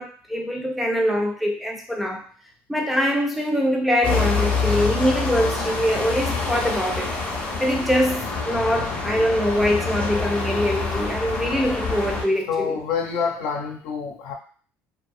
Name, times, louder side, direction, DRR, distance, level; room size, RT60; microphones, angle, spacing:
voice 1, 0.0-2.2 2.7-7.1 7.6-12.8, equal, 5° right, 1 dB, 0.3 m, -23 dB
sound 1, 4.0-12.2, left 4 dB, 25° left, 0.6 m, -26 dB
voice 2, 12.5-14.3, left 6 dB, 85° left, 2 dB, 0.6 m, -27 dB
2.6 x 2.2 x 2.5 m, 0.42 s
cardioid pair, 165°, 5 cm